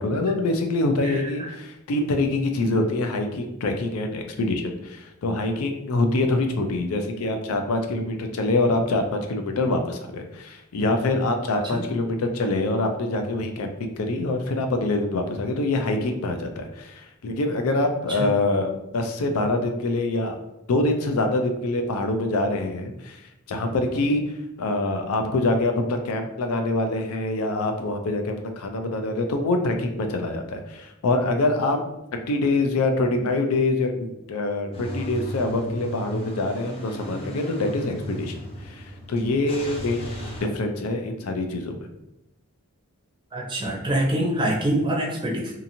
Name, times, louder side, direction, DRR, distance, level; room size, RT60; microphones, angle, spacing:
voice 1, 0.0-20.4 20.7-23.2 23.5-24.2 24.6-31.8 32.3-40.1 40.4-41.7, left 2 dB, 80° left, 5 dB, 0.4 m, -25 dB
Car / Engine starting / Idling, 34.7-40.4, equal, 25° left, 0.5 m, -35 dB
voice 2, 43.3-45.5, right 1 dB, 20° right, -2 dB, 0.5 m, -24 dB
2.8 x 2.5 x 2.6 m, 0.87 s
head